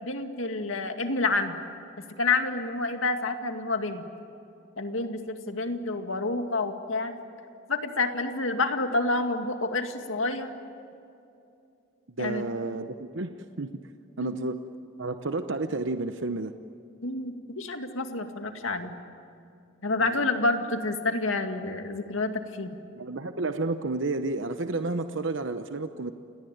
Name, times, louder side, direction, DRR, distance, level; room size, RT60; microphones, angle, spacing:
voice 1, 0.0-1.6 2.2-4.0 4.8-7.2 7.7-10.5 12.2-12.4 14.2-14.5 17.0-19.0 19.8-22.8, left 3 dB, 80° left, 6 dB, 2.1 m, -28 dB
voice 2, 12.1-13.3 13.6-13.8 14.2-14.6 15.0-16.5 20.0-20.3 23.0-26.1, right 3 dB, 65° right, 8 dB, 0.9 m, -31 dB
29.5 x 19.0 x 9.3 m, 2.6 s
head